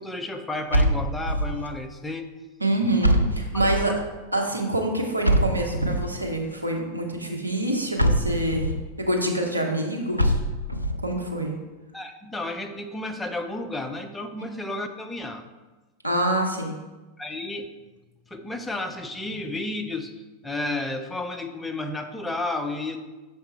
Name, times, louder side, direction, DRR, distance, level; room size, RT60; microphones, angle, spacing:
voice 1, 0.0-2.3 3.5-4.0 11.9-15.4 17.2-17.7 18.3-23.0, left 2 dB, 10° left, 6 dB, 0.5 m, -32 dB
sound 1, 0.7-1.7 3.0-4.0 5.2-6.2 8.0-8.8 10.2-11.0, equal, 90° left, 0.4 m, -23 dB
voice 2, 2.6-3.9 4.3-10.3 11.0-11.5 16.0-16.8, right 1 dB, 85° right, 1 dB, 0.9 m, -26 dB
6.5 x 3.4 x 4.3 m, 1.2 s
figure-of-eight pair, 90°, 0 cm